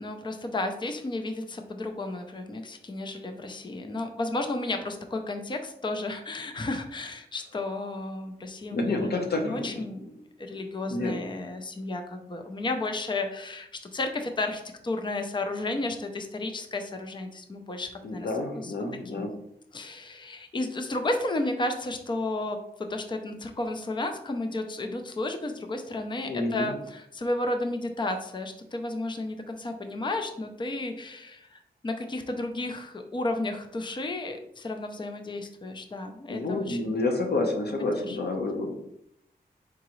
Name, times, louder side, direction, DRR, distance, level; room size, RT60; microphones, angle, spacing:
voice 1, 0.0-10.0 10.4-18.3 18.6-18.7 19.1-19.3 19.7-37.0 38.0-38.2, left 2 dB, 25° left, 5 dB, 0.5 m, -33 dB
voice 2, 8.7-10.1 10.8-11.1 18.0-19.3 26.2-26.7 36.3-38.7, left 2 dB, 70° left, 2 dB, 0.9 m, -29 dB
4.8 x 3.6 x 3.0 m, 0.76 s
wide cardioid pair, 125°, 17 cm